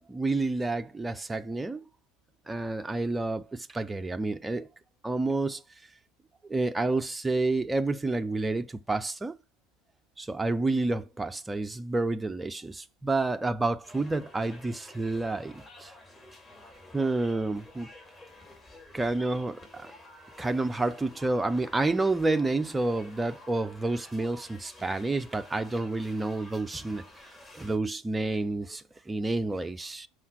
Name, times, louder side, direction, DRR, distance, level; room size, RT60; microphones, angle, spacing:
voice 1, 0.0-1.8 2.5-4.7 5.0-5.6 6.5-9.3 10.2-15.9 16.9-17.9 18.9-19.9 20.4-27.0 27.5-30.1, right 2 dB, 10° right, 0.4 m, -29 dB
sound 1, 13.8-27.8, left 1 dB, 20° left, 2.3 m, -51 dB
5.6 x 4.9 x 5.9 m
figure-of-eight pair, 75°, 0 cm